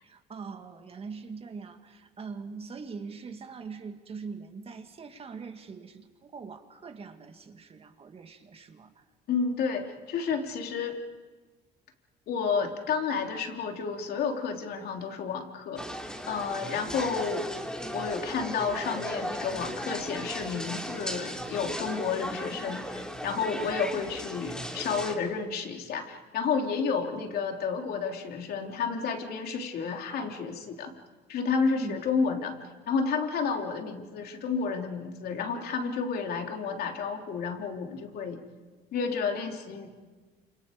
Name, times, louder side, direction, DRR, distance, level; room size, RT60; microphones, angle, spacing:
voice 1, 0.0-9.0 31.8-32.0, right 5 dB, 35° right, 6 dB, 2.2 m, -42 dB
voice 2, 9.3-11.0 12.3-15.8 16.3-17.5 17.9-30.9 31.3-32.6 32.9-38.4 38.9-39.9, left 5 dB, 65° left, 3 dB, 3.2 m, -31 dB
sound 1, 15.8-25.2, equal, 5° left, 3.0 m, -36 dB
30.0 x 27.0 x 5.3 m, 1.3 s
cardioid pair, 110°, 17 cm